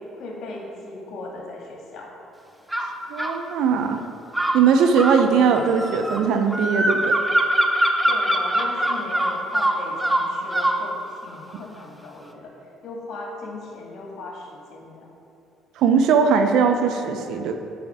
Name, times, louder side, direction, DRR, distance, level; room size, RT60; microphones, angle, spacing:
voice 1, 0.0-2.1 8.1-12.6 12.8-15.1, left 2 dB, 60° left, -1 dB, 1.8 m, -37 dB
sound 1, 2.7-3.4 4.3-10.9, right 1 dB, 10° right, 0.8 m, -23 dB
voice 2, 3.1-4.0 4.5-7.1 15.8-17.5, right 6 dB, 70° right, 6 dB, 0.6 m, -19 dB
9.3 x 4.8 x 4.8 m, 2.8 s
hypercardioid pair, 55°, 0 cm